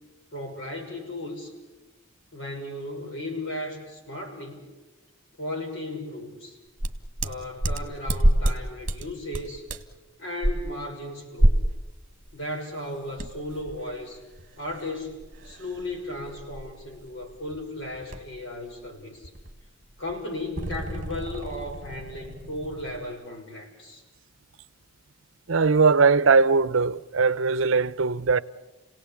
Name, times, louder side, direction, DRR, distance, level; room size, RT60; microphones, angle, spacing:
voice 1, 0.3-1.5 2.3-4.7 5.4-6.6 7.2-9.7 10.2-11.6 12.3-14.2 14.6-19.3 20.0-24.0, left 1 dB, 60° left, 5.9 m, -35 dB
sound 1, 6.8-8.6 8.9-9.1 9.3-10.0 10.4-10.5 11.4-11.8 12.2-12.4 13.2-18.4 18.7-18.9 19.2-23.0, right 1 dB, 40° right, 1.7 m, -28 dB
voice 2, 25.5-28.4, right 4 dB, 65° right, 0.7 m, -20 dB
30.0 x 18.0 x 8.5 m
head